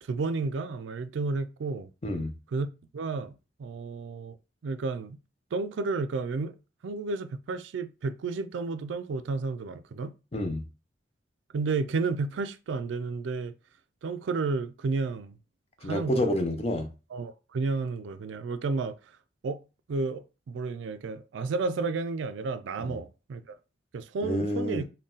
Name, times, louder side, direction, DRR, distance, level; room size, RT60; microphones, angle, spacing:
voice 1, 0.0-1.9 2.5-2.7 2.9-4.4 4.6-5.2 5.5-6.6 6.8-10.1 11.5-13.5 14.0-15.4 15.8-16.3 17.1-19.0 19.4-19.6 19.9-23.6 23.9-24.8, right 4 dB, 85° right, 0.4 m, -32 dB
voice 2, 2.0-2.3 10.3-10.6 15.8-16.9 22.9-23.0 24.2-24.8, left 1 dB, 35° left, 0.5 m, -28 dB
3.9 x 2.2 x 3.7 m
head